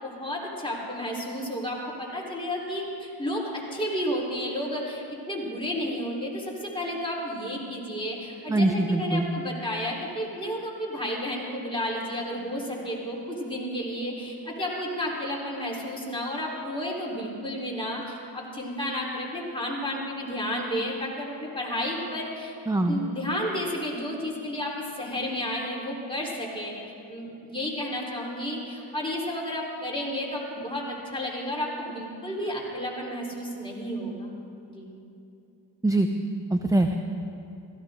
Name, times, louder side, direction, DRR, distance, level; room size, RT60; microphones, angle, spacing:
voice 1, 0.0-22.5 22.9-26.7 27.1-34.3 34.7-34.9, equal, 10° left, -4 dB, 3.9 m, -32 dB
voice 2, 8.5-9.3 22.7-23.0 35.8-36.1 36.5-37.0, right 2 dB, 10° right, 5 dB, 0.6 m, -23 dB
16.5 x 15.0 x 3.8 m, 2.7 s
cardioid pair, 65°, 46 cm